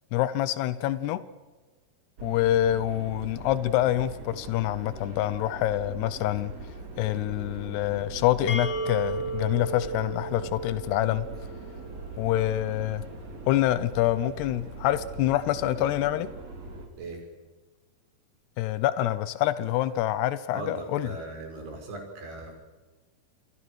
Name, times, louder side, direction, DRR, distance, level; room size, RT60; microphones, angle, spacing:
voice 1, 0.1-1.2 2.2-6.5 7.0-11.3 12.2-13.0 13.5-16.3 18.6-21.1, left 13 dB, 90° left, 14 dB, 3.0 m, -26 dB
sound 1, 2.2-16.9, right 2 dB, 40° right, 4.3 m, -41 dB
sound 2, 8.5-12.2, right 3 dB, 65° left, 5.0 m, -35 dB
voice 2, 20.5-22.5, right 2 dB, 80° right, 2 dB, 7.9 m, -39 dB
29.0 x 23.0 x 6.4 m, 1.3 s
omnidirectional pair, 4.6 m